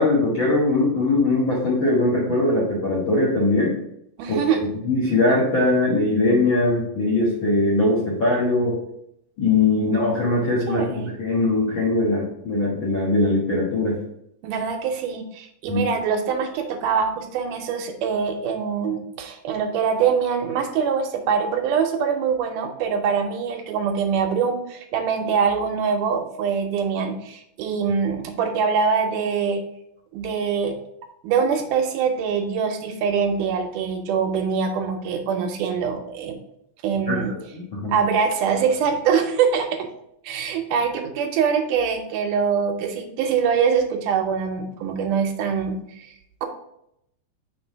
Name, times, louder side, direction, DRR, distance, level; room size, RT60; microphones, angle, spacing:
voice 1, 0.0-3.8 4.3-4.4 4.8-8.8 9.4-14.0 15.7-15.8 37.1-37.2 37.5-37.9, left 2 dB, 50° left, -5 dB, 1.5 m, -21 dB
voice 2, 4.2-4.6 10.7-11.1 14.4-29.6 30.1-30.8 31.2-36.4 36.8-37.3 37.9-39.9 40.2-46.1, right 6 dB, 80° right, 5 dB, 2.2 m, -23 dB
5.9 x 3.6 x 4.5 m, 0.76 s
omnidirectional pair, 3.8 m